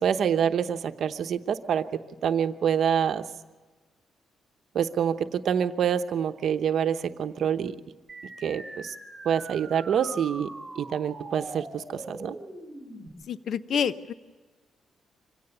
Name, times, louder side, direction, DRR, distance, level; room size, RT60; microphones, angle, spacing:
voice 1, 0.0-1.9 2.2-3.2 4.7-7.7 8.4-8.9 9.2-10.5 10.8-12.3, right 8 dB, 65° right, 8 dB, 0.9 m, -26 dB
sound 1, 8.1-13.1, right 2 dB, 10° right, 3.4 m, -42 dB
voice 2, 13.3-14.1, left 7 dB, 60° left, 14 dB, 0.6 m, -28 dB
25.0 x 17.0 x 6.8 m, 1.3 s
cardioid pair, 110°, 0 cm